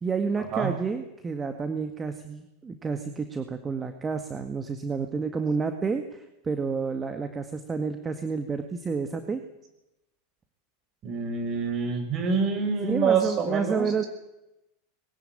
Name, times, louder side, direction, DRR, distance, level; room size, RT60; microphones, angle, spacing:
voice 1, 0.0-9.4 12.8-14.0, right 5 dB, 20° right, 7 dB, 1.9 m, -30 dB
voice 2, 11.0-14.1, right 5 dB, 40° right, 6 dB, 6.0 m, -26 dB
21.0 x 18.0 x 8.9 m, 0.92 s
hypercardioid pair, 85°, 0 cm